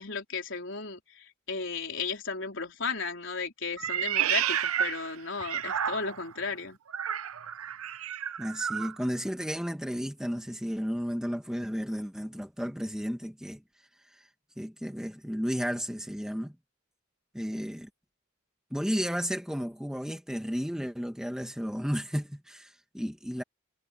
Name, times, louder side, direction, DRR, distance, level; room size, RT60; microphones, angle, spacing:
voice 1, 0.0-6.8, left 4 dB, 60° left, 4.4 m, -35 dB
Meow, 3.8-6.3 6.9-8.9, right 9 dB, 90° right, 0.7 m, -31 dB
voice 2, 8.4-13.6 14.1-14.3 14.6-16.5 17.3-17.9 18.7-23.4, equal, 5° right, 1.5 m, -33 dB
head